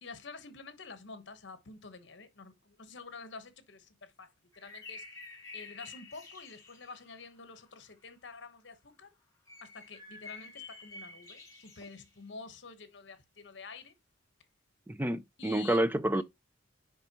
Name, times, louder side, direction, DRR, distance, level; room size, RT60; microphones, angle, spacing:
voice 1, 0.0-5.0 5.5-9.1 9.6-13.9 15.4-15.8 16.1-16.2, left 4 dB, 60° left, 1.1 m, -48 dB
sound 1, 4.5-7.7 9.5-12.2, left 4 dB, 20° left, 2.9 m, -49 dB
voice 2, 14.9-16.2, right 1 dB, 10° right, 0.4 m, -29 dB
9.8 x 3.5 x 2.9 m
head